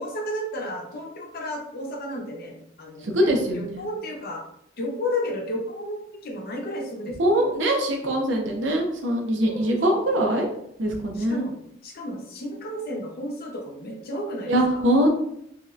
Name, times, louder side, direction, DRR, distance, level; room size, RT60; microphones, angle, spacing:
voice 1, 0.0-3.1 3.5-4.4 4.8-6.0 6.2-7.5 9.4-9.8 10.1-10.2 11.1-11.5 11.8-14.8, left 1 dB, 55° left, 1 dB, 0.7 m, -32 dB
voice 2, 3.0-3.8 7.2-10.5 10.8-11.5 14.5-15.1, right 1 dB, 90° right, 2 dB, 0.7 m, -22 dB
3.0 x 2.8 x 2.4 m, 0.73 s
head